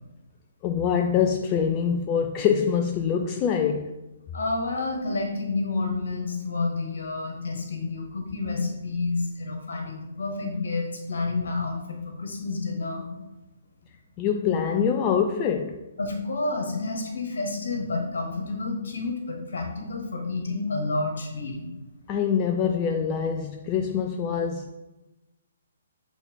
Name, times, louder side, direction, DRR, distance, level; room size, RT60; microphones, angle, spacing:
voice 1, 0.6-4.0 14.2-15.8 22.1-24.7, left 7 dB, 25° left, 0.4 m, -24 dB
voice 2, 4.3-13.0 16.0-21.7, left 3 dB, 60° left, 1.8 m, -29 dB
8.0 x 4.1 x 3.5 m
figure-of-eight pair, 130°, 0 cm